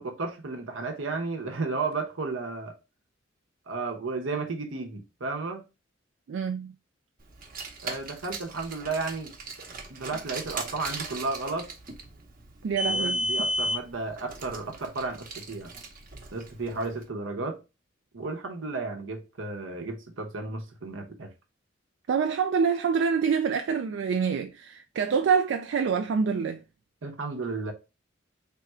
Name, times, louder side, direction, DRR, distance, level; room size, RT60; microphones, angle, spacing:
voice 1, 0.0-2.7 3.7-5.6 7.8-9.3 9.9-11.7 12.8-15.7 16.3-17.6 18.1-21.3 27.0-27.7, right 3 dB, 85° right, 0.9 m, -33 dB
voice 2, 6.3-6.7 12.6-13.2 22.1-26.6, right 6 dB, 65° right, 0.3 m, -26 dB
Car, 7.3-16.9, equal, 45° right, 0.8 m, -34 dB
3.5 x 2.3 x 4.2 m
head